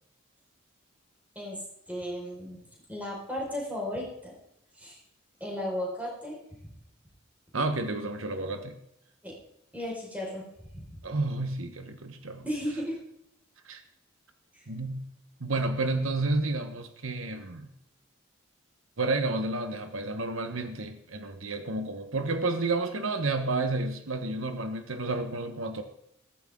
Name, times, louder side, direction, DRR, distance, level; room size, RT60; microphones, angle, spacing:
voice 1, 1.9-4.3 4.7-5.0 5.4-6.7 9.2-9.3 9.7-10.4 10.7-10.8 12.4-13.0 14.5-14.6, equal, 10° right, -3 dB, 5.0 m, -35 dB
voice 2, 7.5-8.8 11.0-12.4 13.6-13.8 14.7-15.1 15.4-17.7 19.0-25.8, right 2 dB, 80° right, 7 dB, 1.2 m, -30 dB
15.5 x 14.5 x 3.8 m, 0.76 s
head